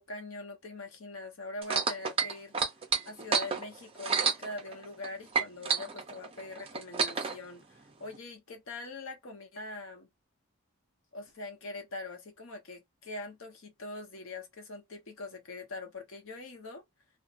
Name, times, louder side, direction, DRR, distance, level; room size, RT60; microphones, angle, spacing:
voice 1, 0.0-2.5 3.0-10.1 11.1-16.8, left 2 dB, 60° left, 0.8 m, -43 dB
sound 1, 1.6-5.1 5.3-7.4 8.1-8.2, right 5 dB, 25° right, 0.4 m, -29 dB
2.7 x 2.1 x 2.4 m
head